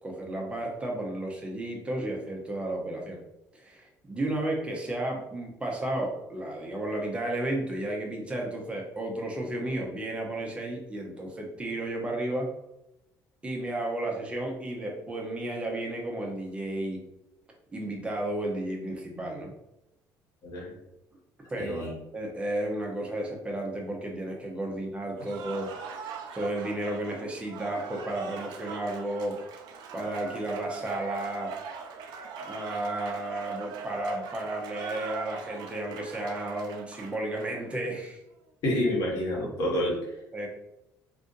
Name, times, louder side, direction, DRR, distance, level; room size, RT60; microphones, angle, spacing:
voice 1, 0.0-3.2 3.5-12.5 13.4-17.0 17.7-19.5 21.5-25.7 25.9-29.4 29.9-31.5 32.4-38.2 40.3-40.5, right 1 dB, 15° right, 0 dB, 0.8 m, -33 dB
voice 2, 21.6-21.9 38.6-39.9, left 1 dB, 60° left, -4 dB, 1.4 m, -28 dB
Cheering / Applause, 25.2-37.8, right 5 dB, 75° right, 0.4 m, -41 dB
2.7 x 2.4 x 3.8 m, 0.87 s
cardioid pair, 125°, 7 cm